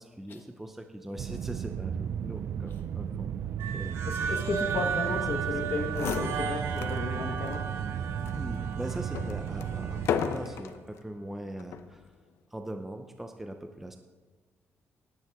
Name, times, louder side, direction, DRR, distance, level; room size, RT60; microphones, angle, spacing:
voice 1, 0.0-3.3 3.7-3.9 4.2-4.5 4.8-5.2 5.7-6.0 8.3-12.1 12.5-14.0, right 1 dB, 5° right, 5 dB, 0.6 m, -41 dB
sound 1, 1.2-10.1, right 8 dB, 60° right, 0.4 m, -34 dB
sound 2, 3.6-10.7, right 6 dB, 80° right, 1.0 m, -35 dB
voice 2, 4.1-7.7, left 4 dB, 55° left, 2 dB, 1.3 m, -34 dB
sound 3, 5.6-5.7 5.9-7.0 7.5-7.6 8.2-10.8 11.6-12.0, left 7 dB, 75° left, 0.7 m, -34 dB
18.0 x 9.5 x 3.6 m, 1.4 s
cardioid pair, 145°, 5 cm